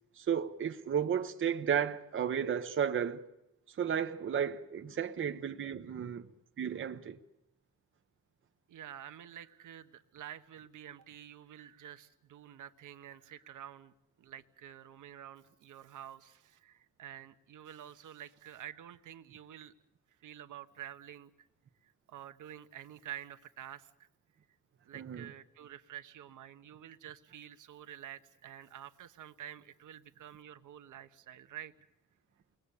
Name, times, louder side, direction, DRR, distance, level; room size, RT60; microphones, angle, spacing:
voice 1, 0.2-3.2 3.7-6.2 6.6-7.2 24.9-25.3, right 8 dB, 40° right, 1.0 m, -33 dB
voice 2, 8.7-13.9 14.2-19.7 20.2-21.5 21.8-23.9 24.8-31.7, right 10 dB, 75° right, 1.2 m, -49 dB
29.5 x 21.0 x 8.4 m
wide cardioid pair, 170°, 32 cm